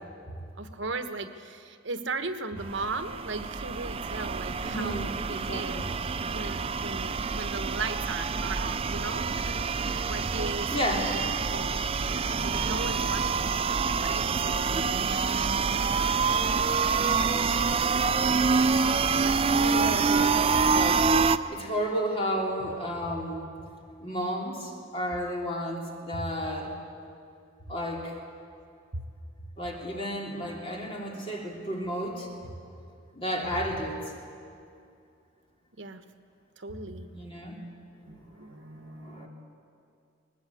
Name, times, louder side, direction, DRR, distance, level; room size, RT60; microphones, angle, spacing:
voice 1, 0.6-5.8 6.3-9.6 10.1-11.2 11.5-11.8 12.4-13.6 14.0-16.4 28.9-29.0 35.7-36.0 36.6-37.1 37.5-37.7 38.1-39.3, right 3 dB, 70° right, 9 dB, 1.2 m, -37 dB
sound 1, 2.6-21.4, right 5 dB, 30° right, 0.5 m, -26 dB
voice 2, 4.6-5.9 10.7-11.1 17.0-17.2 19.5-21.1 21.5-23.4 24.0-26.7 27.7-28.1 29.6-32.5 33.1-34.1 37.1-37.6 38.0-38.1 38.9-39.3, equal, 30° left, -1 dB, 3.2 m, -32 dB
23.0 x 19.5 x 8.4 m, 2.4 s
head